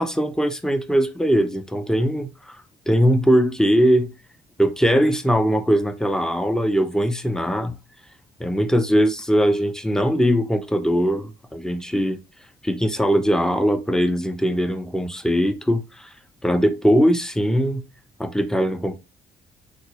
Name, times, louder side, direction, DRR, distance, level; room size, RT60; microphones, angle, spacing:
voice 1, 0.0-4.1 4.6-7.8 8.4-12.2 12.6-16.1 16.4-17.8 18.2-19.0, equal, 5° left, 0.4 m, -20 dB
3.6 x 2.3 x 3.0 m
cardioid pair, 90°, 20 cm